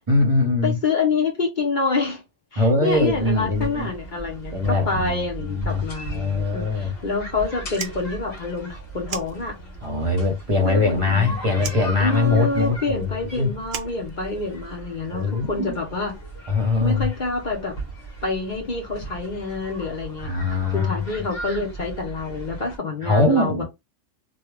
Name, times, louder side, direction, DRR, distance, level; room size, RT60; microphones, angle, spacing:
voice 1, 0.1-0.8 2.6-3.9 4.5-5.8 6.1-6.9 9.8-13.5 15.1-15.8 16.5-17.1 20.2-20.9 23.0-23.6, left 3 dB, 30° right, 0.8 m, -22 dB
voice 2, 0.6-2.2 2.5-9.6 10.6-11.4 12.0-16.1 16.8-17.8 18.2-23.6, left 4 dB, 40° left, 1.0 m, -27 dB
sound 1, 2.9-22.8, right 3 dB, 55° left, 1.4 m, -38 dB
Fire, 7.7-9.9 10.2-11.2 11.6-14.7, right 8 dB, 90° right, 1.0 m, -37 dB
3.3 x 2.3 x 3.3 m
omnidirectional pair, 1.3 m